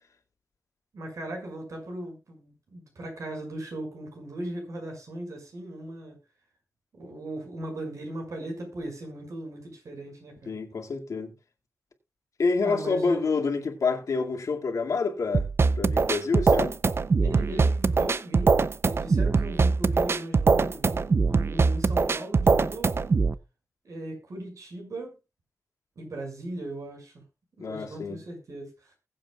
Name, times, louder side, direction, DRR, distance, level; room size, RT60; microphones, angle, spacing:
voice 1, 0.9-6.2 6.9-10.5 12.6-13.2 17.2-23.1 23.8-25.1 26.0-27.2 27.6-28.9, right 1 dB, 70° right, 6.2 m, -38 dB
voice 2, 10.5-11.3 12.4-15.5 15.8-16.8 27.6-28.2, left 4 dB, 80° left, 2.3 m, -27 dB
sound 1, 15.3-23.3, right 4 dB, 50° right, 0.6 m, -22 dB
21.0 x 7.9 x 2.4 m
wide cardioid pair, 95°, 6 cm